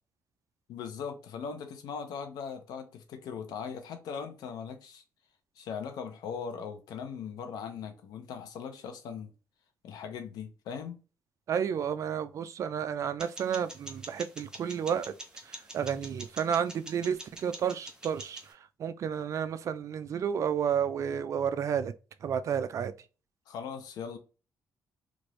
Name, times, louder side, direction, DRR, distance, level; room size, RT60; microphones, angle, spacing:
voice 1, 0.7-5.0 5.6-9.3 9.8-11.0 23.5-24.2, left 6 dB, 80° left, 0.7 m, -39 dB
voice 2, 11.5-15.1 15.5-21.9 22.2-22.9, right 8 dB, 50° right, 0.4 m, -31 dB
sound 1, 13.2-18.5, right 1 dB, 10° right, 0.8 m, -46 dB
2.9 x 2.5 x 3.1 m
cardioid pair, 105°, 7 cm